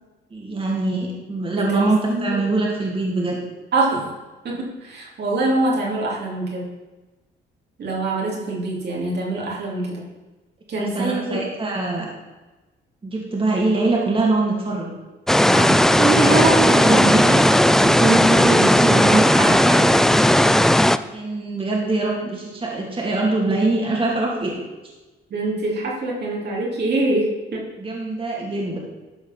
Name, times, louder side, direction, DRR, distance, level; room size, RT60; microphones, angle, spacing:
voice 1, 0.3-3.4 10.8-12.1 13.0-14.9 15.5-16.4 16.6-19.9 21.1-24.5 27.8-28.8, right 2 dB, 25° right, -2 dB, 2.5 m, -23 dB
voice 2, 1.5-2.6 3.7-4.1 4.4-6.7 7.8-10.0 10.7-11.4 15.9-17.3 25.3-27.6, right 2 dB, 55° right, -3 dB, 2.8 m, -24 dB
sound 1, 15.3-21.0, left 1 dB, ahead, 0.3 m, -15 dB
12.5 x 4.9 x 5.7 m, 1.2 s
cardioid pair, 90°, 20 cm